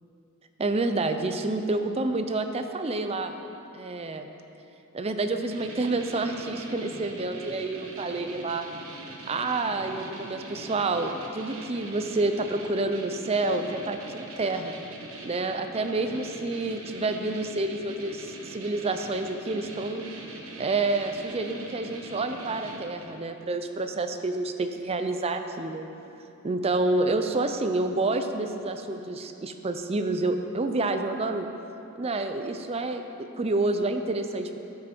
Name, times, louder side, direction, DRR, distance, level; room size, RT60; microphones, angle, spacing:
voice 1, 0.6-3.3 3.7-4.3 4.9-8.7 9.3-14.8 15.2-20.1 20.6-25.9 26.4-31.5 31.9-34.6, right 2 dB, 30° right, 7 dB, 0.5 m, -28 dB
sound 1, 5.5-23.2, right 2 dB, 80° right, 1.2 m, -42 dB
11.0 x 7.5 x 4.5 m, 2.9 s
head